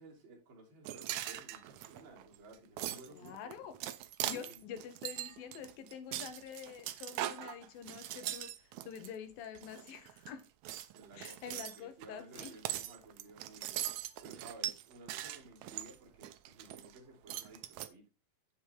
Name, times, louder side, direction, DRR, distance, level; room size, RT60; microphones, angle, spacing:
voice 1, 0.0-3.6 4.2-4.6 10.9-18.1, right 2 dB, 40° right, 3.2 m, -55 dB
sound 1, 0.8-9.1 9.5-10.3 10.6-17.0 17.3-17.9, right 13 dB, 80° right, 1.6 m, -41 dB
voice 2, 3.1-3.7 4.2-10.5 11.2-12.5, left 8 dB, 90° left, 2.9 m, -47 dB
8.6 x 7.1 x 3.4 m
omnidirectional pair, 4.0 m